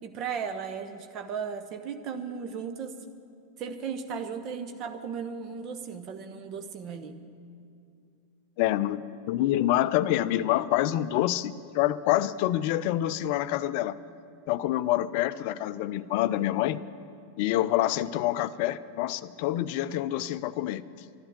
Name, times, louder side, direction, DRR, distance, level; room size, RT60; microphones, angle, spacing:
voice 1, 0.0-3.0 3.6-7.2, right 6 dB, 35° right, 8 dB, 1.1 m, -36 dB
voice 2, 8.6-14.0 14.5-16.8 17.4-20.8, left 14 dB, 45° left, 15 dB, 0.4 m, -27 dB
12.0 x 11.5 x 9.0 m, 2.4 s
figure-of-eight pair, 90°, 0 cm